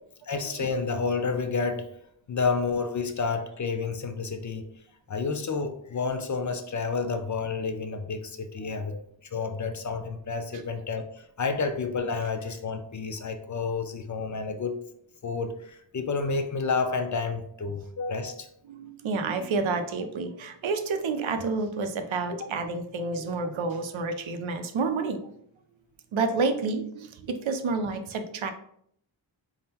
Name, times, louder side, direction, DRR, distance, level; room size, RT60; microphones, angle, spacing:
voice 1, 0.2-1.9 2.3-4.7 5.1-9.0 9.3-14.8 15.2-18.5, left 4 dB, 40° left, 8 dB, 0.4 m, -30 dB
voice 2, 8.6-9.0 18.7-25.4 26.1-28.5, right 4 dB, 85° right, 8 dB, 0.6 m, -29 dB
3.6 x 2.1 x 4.1 m, 0.68 s
wide cardioid pair, 100°, 46 cm